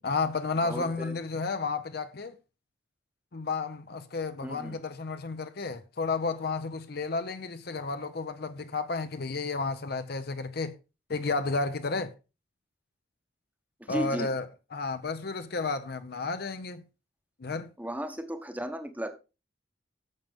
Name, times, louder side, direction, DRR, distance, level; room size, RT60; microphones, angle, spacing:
voice 1, 0.0-2.4 3.3-10.7 11.1-12.1 13.9-14.5 14.7-16.8 17.4-17.7, left 3 dB, 55° left, 0.7 m, -32 dB
voice 2, 0.6-1.1 4.4-4.8 13.8-14.3 17.8-19.1, equal, 10° right, 1.0 m, -35 dB
10.5 x 7.4 x 3.5 m
head